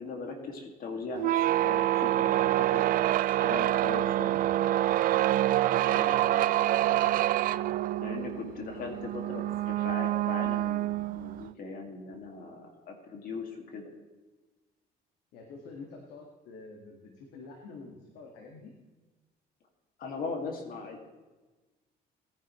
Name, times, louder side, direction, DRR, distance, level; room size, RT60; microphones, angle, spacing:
voice 1, 0.0-2.9 3.4-4.4 8.0-13.9 20.0-21.0, left 4 dB, 60° left, 2 dB, 2.2 m, -39 dB
sound 1, 1.1-11.5, right 14 dB, 55° right, 0.4 m, -26 dB
voice 2, 5.8-6.5 8.6-9.0 15.3-18.7, left 3 dB, 85° left, 1 dB, 1.9 m, -47 dB
19.0 x 10.5 x 3.1 m, 1.2 s
cardioid pair, 110°, 17 cm